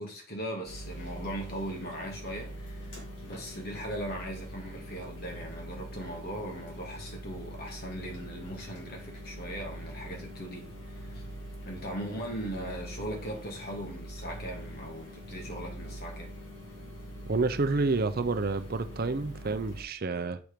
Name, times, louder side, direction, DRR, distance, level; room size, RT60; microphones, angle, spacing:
voice 1, 0.0-2.9 3.2-11.2 11.6-16.3, right 1 dB, 50° left, 2.2 m, -39 dB
sound 1, 0.6-19.8, equal, 65° left, 2.8 m, -43 dB
voice 2, 17.3-20.4, right 3 dB, 50° right, 0.6 m, -29 dB
7.1 x 4.7 x 5.1 m
head